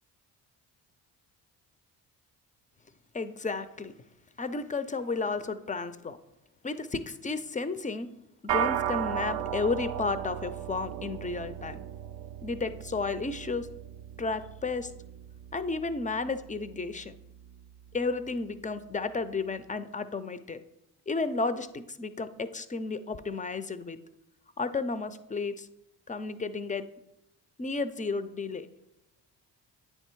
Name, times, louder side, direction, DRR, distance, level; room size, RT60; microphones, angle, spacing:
voice 1, 3.1-3.9 4.4-6.2 6.6-8.1 8.4-11.8 12.4-13.7 14.2-14.9 15.5-17.2 17.9-20.6 21.1-24.0 24.6-25.7 26.1-26.9 27.6-28.7, left 3 dB, 15° left, 13 dB, 0.4 m, -32 dB
sound 1, 8.5-18.0, right 10 dB, 55° right, 0.6 m, -36 dB
8.9 x 3.3 x 4.6 m, 0.88 s
hypercardioid pair, 50°, 48 cm